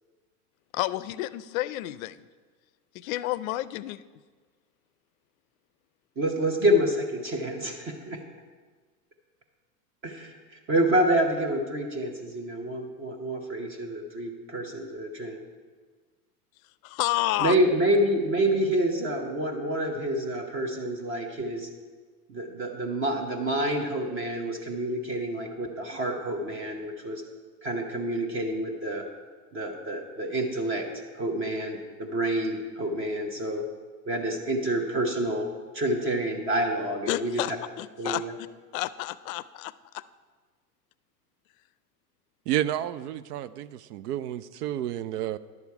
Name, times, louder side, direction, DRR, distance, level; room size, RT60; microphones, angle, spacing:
voice 1, 0.7-2.3 2.9-4.0 16.8-17.6 37.1-38.2 38.7-40.0, left 16 dB, 60° left, 17 dB, 0.5 m, -30 dB
voice 2, 6.2-8.2 10.0-10.4 10.7-15.4 17.4-21.7 22.3-27.2 27.6-29.1 29.5-30.9 31.1-33.7 34.1-35.5 35.7-37.4 38.0-38.3, right 1 dB, 25° right, 3 dB, 0.9 m, -28 dB
voice 3, 42.5-45.4, right 12 dB, 80° right, 15 dB, 0.5 m, -30 dB
11.0 x 7.0 x 4.7 m, 1.4 s
supercardioid pair, 125°, 47 cm